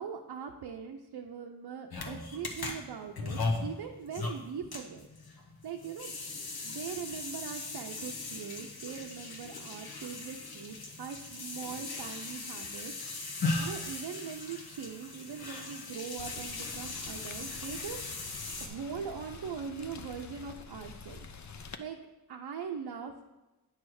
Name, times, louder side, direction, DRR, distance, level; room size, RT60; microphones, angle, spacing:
voice 1, 0.0-5.1 5.6-6.1 6.6-12.9 13.3-18.0 18.6-21.3 21.5-22.0 22.3-23.2, right 7 dB, 85° right, 2 dB, 0.6 m, -41 dB
sound 1, 1.9-18.7, left 3 dB, 70° left, 1.1 m, -38 dB
Rain, 16.2-21.8, left 5 dB, 45° left, 0.6 m, -47 dB
9.3 x 3.2 x 6.2 m, 1.1 s
wide cardioid pair, 80°, 39 cm